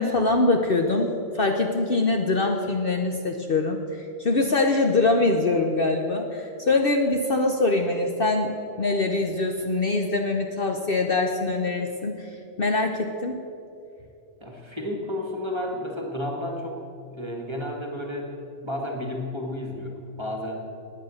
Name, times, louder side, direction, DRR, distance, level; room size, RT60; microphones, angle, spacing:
voice 1, 0.0-12.3 12.6-13.4, left 2 dB, 45° left, 3 dB, 1.1 m, -23 dB
voice 2, 14.4-16.8 17.1-20.7, left 1 dB, 20° right, 1 dB, 2.0 m, -32 dB
18.5 x 9.4 x 6.5 m, 2.5 s
omnidirectional pair, 1.4 m